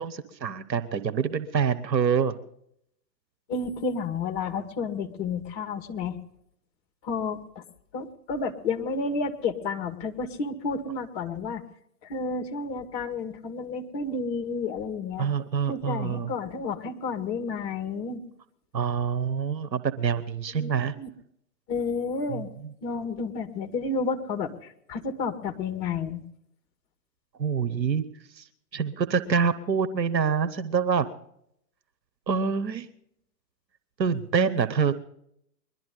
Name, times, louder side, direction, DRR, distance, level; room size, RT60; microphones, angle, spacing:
voice 1, 0.0-2.3 15.2-16.3 18.7-20.9 22.3-22.7 27.4-28.0 28.4-28.5 28.7-31.1 32.3-32.9 34.0-34.9, right 6 dB, 85° right, 12 dB, 1.1 m, -26 dB
voice 2, 3.5-6.2 7.0-7.6 7.9-11.6 12.0-15.3 15.7-18.2 20.5-21.1 21.7-22.5 22.8-26.2, left 4 dB, 40° left, 6 dB, 1.9 m, -31 dB
22.0 x 12.5 x 3.8 m, 0.72 s
hypercardioid pair, 120°, 50 cm